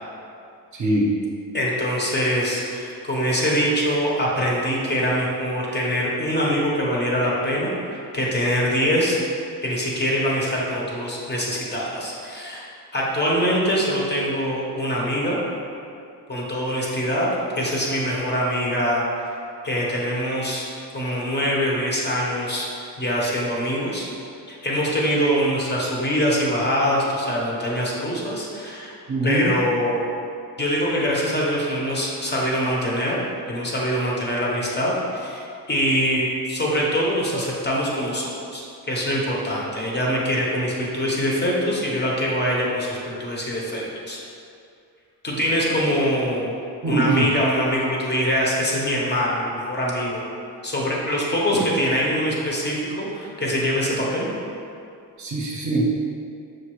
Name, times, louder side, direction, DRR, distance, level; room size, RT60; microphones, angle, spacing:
voice 1, 0.7-1.0 29.1-29.5 46.8-47.3 51.5-51.6 55.2-55.9, right 2 dB, 45° right, -3 dB, 0.6 m, -22 dB
voice 2, 1.5-9.2 9.6-12.7 12.9-15.4 16.3-17.3 17.6-19.3 19.6-22.7 23.0-24.1 24.5-29.0 29.2-30.1 30.6-33.2 33.5-38.6 38.9-44.2 45.2-46.5 46.9-50.2 50.6-54.3, equal, 25° left, -4 dB, 0.7 m, -24 dB
6.1 x 2.5 x 3.0 m, 2.5 s
wide cardioid pair, 155°, 41 cm